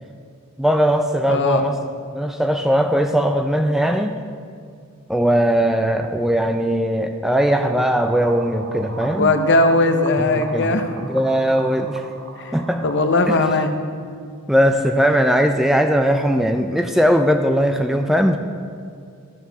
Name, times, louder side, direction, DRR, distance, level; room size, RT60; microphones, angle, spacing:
voice 1, 0.6-1.8 2.1-4.2 5.1-9.3 10.2-12.1 12.5-12.8 13.3-13.4 14.5-18.4, equal, ahead, 5 dB, 0.3 m, -19 dB
voice 2, 1.3-1.6 9.2-10.9 12.4-12.5 12.8-13.7, left 2 dB, 55° left, 7 dB, 0.7 m, -18 dB
sound 1, 7.3-13.4, right 4 dB, 60° right, 0.9 m, -38 dB
12.5 x 4.8 x 6.6 m, 2.3 s
head